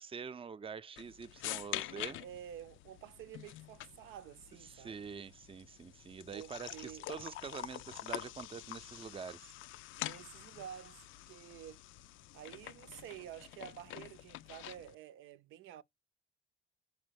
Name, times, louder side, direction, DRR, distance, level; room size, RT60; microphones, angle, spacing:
voice 1, 0.0-2.2 4.7-9.4, right 6 dB, 30° right, 0.5 m, -45 dB
sound 1, 1.0-15.0, left 15 dB, 85° left, 0.4 m, -46 dB
voice 2, 1.8-5.0 6.3-7.1 10.0-11.0 11.3-11.8 12.3-15.8, right 11 dB, 85° right, 0.6 m, -50 dB
5.2 x 5.0 x 6.4 m
cardioid pair, 90°, 20 cm